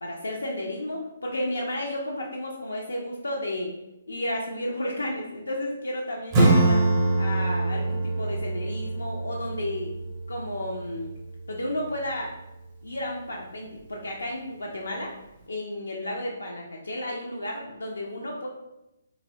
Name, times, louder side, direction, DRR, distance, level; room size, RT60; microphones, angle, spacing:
voice 1, 0.0-3.8 4.1-6.8 7.2-9.9 10.3-11.1 11.5-12.3 12.8-15.1 15.5-18.5, left 1 dB, 70° left, -1 dB, 0.4 m, -32 dB
Acoustic guitar / Strum, 6.3-11.6, right 2 dB, 20° right, 0.6 m, -25 dB
3.0 x 2.6 x 2.6 m, 0.91 s
figure-of-eight pair, 135°, 0 cm